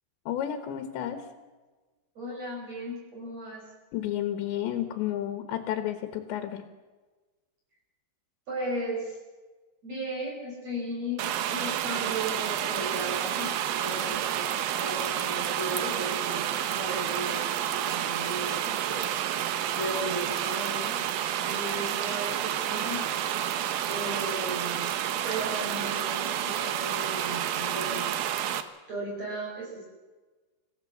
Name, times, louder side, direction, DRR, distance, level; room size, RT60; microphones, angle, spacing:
voice 1, 0.3-1.2 3.9-6.6, left 11 dB, 85° left, 8 dB, 3.7 m, -31 dB
voice 2, 2.1-3.6 8.5-9.2 9.8-19.2 19.7-21.0 21.4-23.1 23.8-24.9 25.2-28.2 28.9-29.9, right 1 dB, 40° right, -4 dB, 6.8 m, -36 dB
sound 1, 11.2-28.6, right 10 dB, 70° right, 2.6 m, -30 dB
26.0 x 16.0 x 7.4 m, 1.3 s
omnidirectional pair, 4.9 m